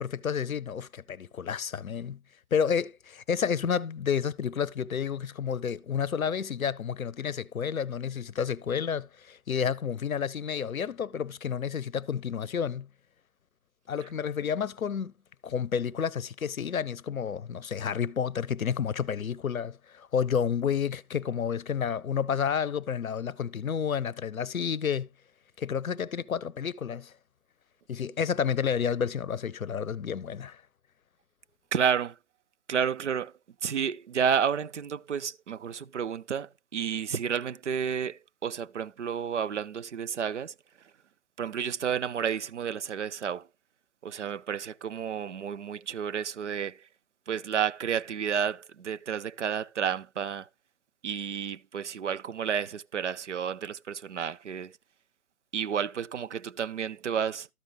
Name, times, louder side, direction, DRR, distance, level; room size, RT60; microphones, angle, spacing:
voice 1, 0.0-2.2 2.5-12.9 13.9-15.1 15.4-25.1 25.6-27.1 27.9-30.6, left 7 dB, 65° left, 0.7 m, -30 dB
voice 2, 31.7-32.2 32.7-33.3 33.6-40.5 41.4-43.5 44.0-46.9 47.3-50.5 51.0-54.8 55.5-57.5, right 7 dB, 55° right, 0.5 m, -31 dB
13.0 x 5.2 x 3.3 m
figure-of-eight pair, 150°, 44 cm